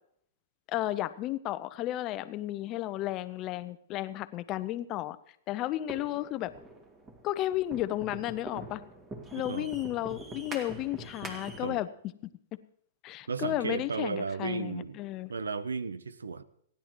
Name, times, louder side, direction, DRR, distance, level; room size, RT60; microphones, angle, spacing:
voice 1, 0.7-5.2 5.5-6.5 7.2-8.8 9.3-11.9 12.2-12.3 13.0-15.3, left 14 dB, 35° left, 0.8 m, -33 dB
sound 1, 5.9-11.8, right 1 dB, 20° right, 2.4 m, -44 dB
voice 2, 9.4-9.7 11.6-11.8 13.3-15.0 15.3-16.4, right 4 dB, 85° right, 0.8 m, -34 dB
29.0 x 10.5 x 3.1 m
hypercardioid pair, 120°, 0 cm